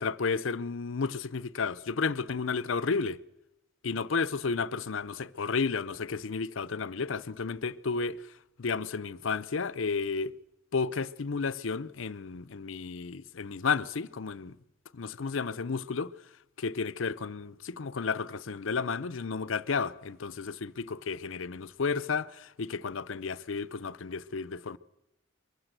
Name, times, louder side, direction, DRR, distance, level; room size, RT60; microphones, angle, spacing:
voice 1, 0.0-3.2 3.8-8.2 8.6-10.3 10.7-14.6 14.9-16.1 16.6-24.8, left 5 dB, 75° left, 0.6 m, -32 dB
23.0 x 15.0 x 8.0 m
head